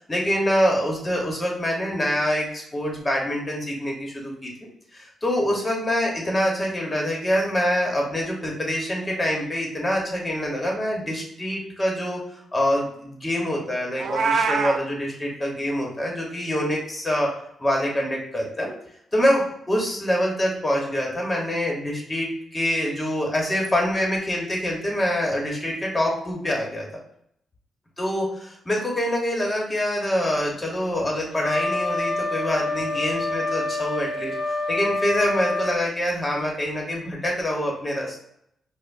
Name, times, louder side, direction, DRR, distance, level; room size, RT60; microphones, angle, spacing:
voice 1, 0.1-12.2 12.5-17.3 17.6-18.7 19.1-26.9 28.0-34.3 34.7-38.2, equal, 20° left, -1 dB, 1.1 m, -25 dB
Meow, 14.0-14.8, right 5 dB, 65° right, 0.4 m, -23 dB
Wind instrument woodwind instrument, 31.4-35.8, left 2 dB, 85° left, 0.8 m, -27 dB
4.9 x 2.1 x 2.6 m, 0.71 s
cardioid pair, 95°, 0 cm